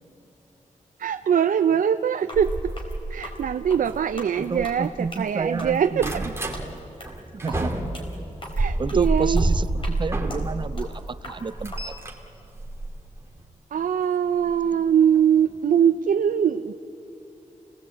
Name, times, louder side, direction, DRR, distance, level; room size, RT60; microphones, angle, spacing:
voice 1, 1.0-2.7 3.1-6.2 8.6-9.4 13.7-16.7, right 8 dB, 90° right, 9 dB, 0.6 m, -22 dB
sound 1, 2.2-11.8, left 1 dB, 40° left, 4.1 m, -42 dB
sound 2, 2.3-5.1 5.4-6.6 7.1-10.8 11.2-13.4 14.5-14.7 15.1-15.2 15.5-15.6, right 2 dB, 20° right, 2.3 m, -28 dB
voice 2, 4.4-6.3 7.3-8.1 8.8-11.9, right 4 dB, 35° right, 15 dB, 0.6 m, -30 dB
29.0 x 18.5 x 8.5 m, 3.0 s
wide cardioid pair, 165°, 14 cm